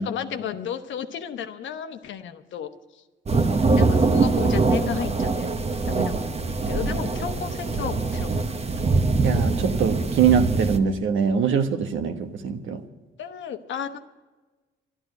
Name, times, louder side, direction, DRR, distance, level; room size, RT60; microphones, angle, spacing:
voice 1, 0.0-3.0 3.7-5.5 5.8-8.6 13.2-14.0, left 8 dB, 70° left, 9 dB, 1.0 m, -33 dB
sound 1, 3.3-10.8, right 3 dB, 30° right, 0.9 m, -23 dB
voice 2, 9.2-12.8, right 7 dB, 75° right, 7 dB, 1.2 m, -23 dB
11.5 x 11.5 x 7.8 m, 1.2 s
cardioid pair, 90°, 20 cm